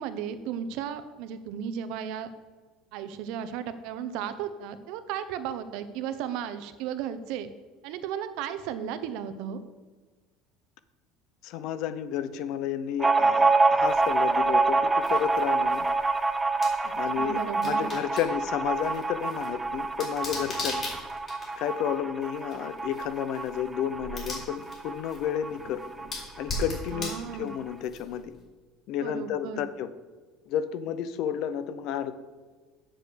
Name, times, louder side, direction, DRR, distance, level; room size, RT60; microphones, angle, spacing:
voice 1, 0.0-2.3 2.9-7.5 7.8-9.6 17.2-17.9 26.9-27.5 29.0-29.6, right 8 dB, 70° right, 11 dB, 0.8 m, -35 dB
voice 2, 11.4-15.9 16.9-17.4 17.6-20.8 21.6-25.8 26.4-28.4 28.9-29.9 30.5-32.1, left 9 dB, 60° left, 13 dB, 0.6 m, -31 dB
sound 1, 13.0-26.1 26.4-26.5 26.8-27.6, right 3 dB, 10° right, 0.5 m, -27 dB
sound 2, 13.8-28.4, left 2 dB, 30° left, 3.6 m, -41 dB
7.6 x 6.5 x 6.8 m, 1.4 s
cardioid pair, 140°, 0 cm